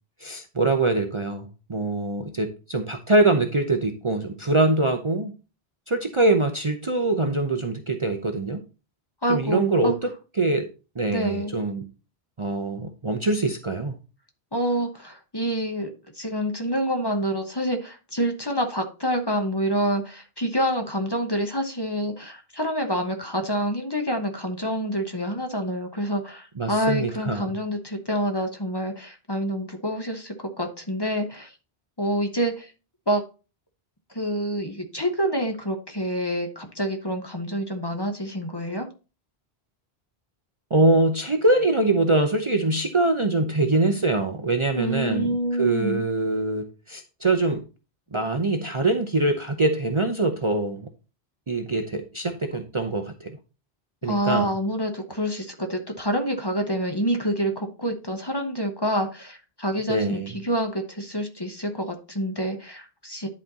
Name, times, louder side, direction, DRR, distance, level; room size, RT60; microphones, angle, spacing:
voice 1, 0.2-5.3 5.9-8.6 9.3-10.1 10.4-10.7 11.0-11.9 12.4-14.0 26.6-27.5 40.7-47.6 48.1-50.9 51.5-53.3 54.0-54.6 59.9-60.3, right 2 dB, 35° right, 4 dB, 0.8 m, -23 dB
voice 2, 9.2-9.9 11.1-11.5 14.5-15.9 16.2-31.5 32.0-32.7 33.1-33.2 34.1-38.9 44.8-46.0 54.1-63.3, equal, 25° left, 4 dB, 1.1 m, -27 dB
10.5 x 4.3 x 4.0 m, 0.32 s
omnidirectional pair, 1.0 m